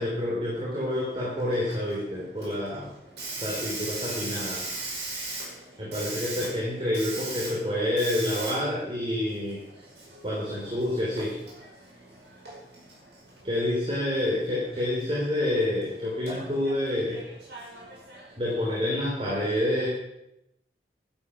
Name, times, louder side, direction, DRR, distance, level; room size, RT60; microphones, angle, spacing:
voice 1, 0.0-2.9 3.3-4.6 5.8-9.6 10.2-11.3 13.4-17.2 18.4-19.9, left 1 dB, 30° right, -5 dB, 3.3 m, -28 dB
Hiss, 0.9-19.3, right 2 dB, 75° right, 5.5 m, -40 dB
11.5 x 11.0 x 6.1 m, 0.86 s
head